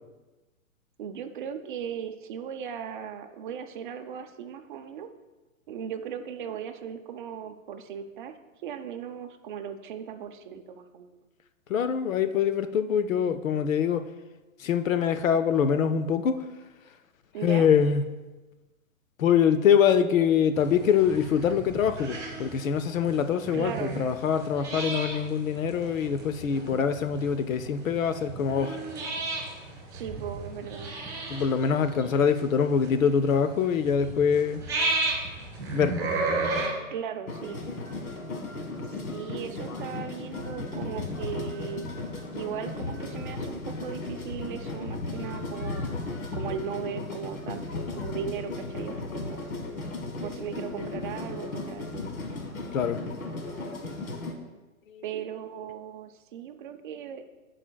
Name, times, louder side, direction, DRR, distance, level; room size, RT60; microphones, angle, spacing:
voice 1, 1.0-5.1 5.7-8.3 8.6-11.2 17.3-17.7 23.5-24.0 29.9-30.9 36.9-37.6 38.8-41.9 42.3-45.9 46.3-47.6 47.9-49.5 50.2-52.0 55.0-57.2, right 8 dB, 35° right, 6 dB, 0.6 m, -37 dB
voice 2, 11.7-14.0 14.6-16.4 17.4-18.1 19.2-28.8 31.3-34.6 35.7-36.1 52.7-53.0 54.9-55.0, left 7 dB, 70° left, 11 dB, 0.7 m, -24 dB
sound 1, 20.5-36.7, right 2 dB, 10° right, 1.6 m, -34 dB
sound 2, 37.3-54.3, left 2 dB, 85° left, 1.4 m, -35 dB
13.0 x 5.0 x 2.3 m, 1.2 s
hypercardioid pair, 145°, 42 cm